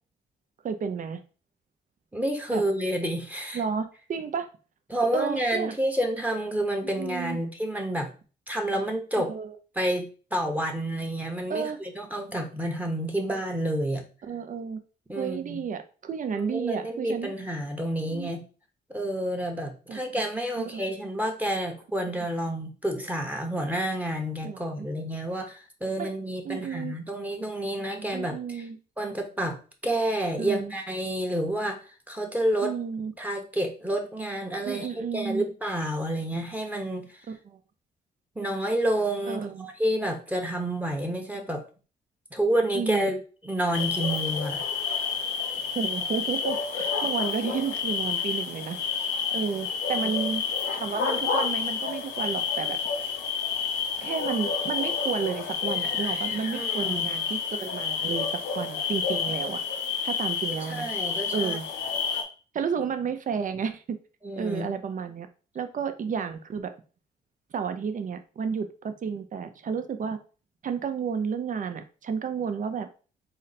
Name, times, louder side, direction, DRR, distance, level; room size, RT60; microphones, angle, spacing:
voice 1, 0.6-1.2 2.5-2.6 3.5-4.5 5.1-5.7 6.8-7.4 9.2-9.6 11.5-11.8 14.2-14.8 15.2-17.3 18.1-18.3 19.9-20.0 20.6-20.8 24.4-24.9 26.0-26.1 26.4-27.0 28.1-28.8 30.4-30.7 32.6-33.1 34.7-35.5 37.3-37.6 39.3-39.7 42.7-43.2 45.7-48.8 49.3-50.4 50.7-52.8 54.0-58.3 58.5-59.6 60.0-60.9 61.3-61.6 62.5-64.0 64.3-65.3 65.5-66.7 67.5-70.2 70.6-72.9, right 6 dB, 50° right, 8 dB, 0.6 m, -31 dB
voice 2, 2.1-3.6 4.9-8.1 8.5-9.3 9.7-14.0 15.1-15.6 16.4-18.5 18.9-28.7 29.0-31.8 32.1-32.7 33.2-37.2 38.3-41.6 42.3-43.2 43.4-44.6 56.5-57.1 60.6-61.6 64.2-64.7, right 1 dB, 10° right, 3 dB, 1.0 m, -29 dB
sound 1, 43.7-62.2, left 6 dB, 80° left, 0.7 m, -29 dB
4.0 x 2.1 x 4.1 m, 0.36 s
supercardioid pair, 65°, 18 cm